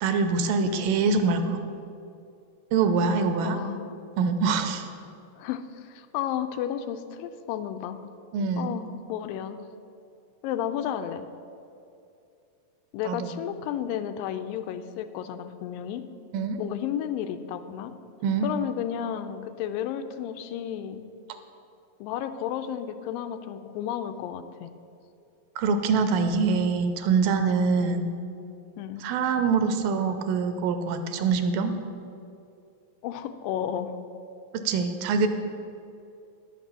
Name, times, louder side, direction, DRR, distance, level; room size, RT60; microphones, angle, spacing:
voice 1, 0.0-1.6 2.7-3.6 4.2-4.9 8.3-8.8 13.1-13.3 16.3-16.6 18.2-18.5 25.6-28.1 29.0-31.7 34.5-35.3, right 5 dB, 85° right, 7 dB, 2.5 m, -24 dB
voice 2, 3.4-3.9 5.4-8.1 8.6-9.6 10.4-11.2 12.9-16.0 16.6-17.9 18.4-21.0 22.0-24.7 27.8-28.0 28.8-29.0 33.0-34.0, left 9 dB, 85° left, 9 dB, 2.3 m, -32 dB
11.0 x 5.9 x 7.3 m, 2.5 s
omnidirectional pair, 4.0 m